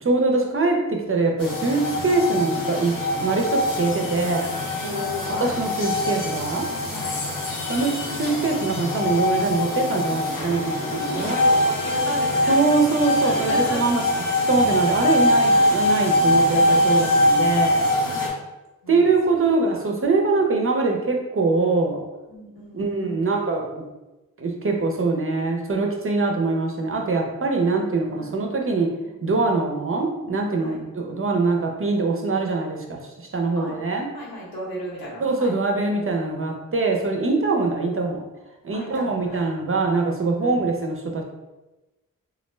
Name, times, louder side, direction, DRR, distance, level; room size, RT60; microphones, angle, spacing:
voice 1, 0.0-4.6 5.3-6.7 7.7-10.6 10.9-11.4 12.5-14.0 14.5-17.8 18.9-22.0 22.7-23.8 24.4-28.9 29.2-33.0 33.3-34.1 35.2-38.2 38.6-41.2, right 3 dB, 40° right, 2 dB, 0.5 m, -23 dB
sound 1, 1.4-18.3, left 1 dB, 65° left, 0.7 m, -23 dB
voice 2, 4.8-5.6 6.9-7.2 10.1-12.6 13.2-13.8 15.5-15.7 18.0-18.3 18.8-19.8 22.3-23.3 28.2-28.4 29.0-29.1 30.6-30.8 33.6-33.8 34.1-35.5 38.7-39.4 40.4-40.5, equal, 85° left, -7 dB, 1.1 m, -36 dB
2.4 x 2.1 x 3.1 m, 1.1 s
cardioid pair, 40°, 36 cm